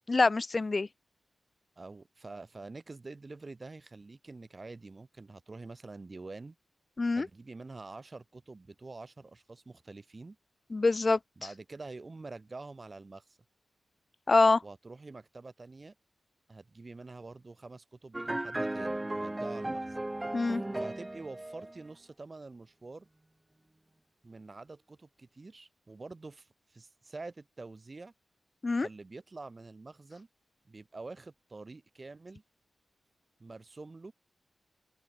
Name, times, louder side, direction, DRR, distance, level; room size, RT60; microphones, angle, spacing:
voice 1, 0.1-0.9 7.0-7.3 10.7-11.2 14.3-14.6 20.3-20.6 28.6-28.9, left 3 dB, 40° left, 0.4 m, -25 dB
voice 2, 1.8-6.5 7.2-10.4 11.4-13.4 14.6-15.9 16.5-20.0 20.5-23.1 24.2-28.1 28.8-30.3 30.7-32.4 33.4-34.1, right 3 dB, 35° right, 4.8 m, -47 dB
sound 1, 18.1-21.8, right 1 dB, 20° right, 0.7 m, -35 dB
open air
cardioid pair, 70°, 0 cm